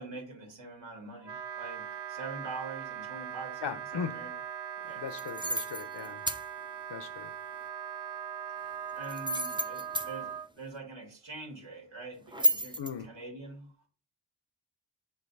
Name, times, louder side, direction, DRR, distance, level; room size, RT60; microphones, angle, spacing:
voice 1, 0.0-4.3 4.8-5.0 8.9-13.7, right 3 dB, 85° right, 2.0 m, -44 dB
Wind instrument woodwind instrument, 1.2-10.5, right 9 dB, 65° right, 0.7 m, -40 dB
voice 2, 3.6-4.3 5.0-6.3 6.9-7.3 12.8-13.2, left 7 dB, 70° left, 0.8 m, -39 dB
sound 1, 5.1-6.4 9.0-10.1 12.3-12.9, equal, 10° right, 0.6 m, -30 dB
5.5 x 3.5 x 5.3 m
cardioid pair, 40°, 44 cm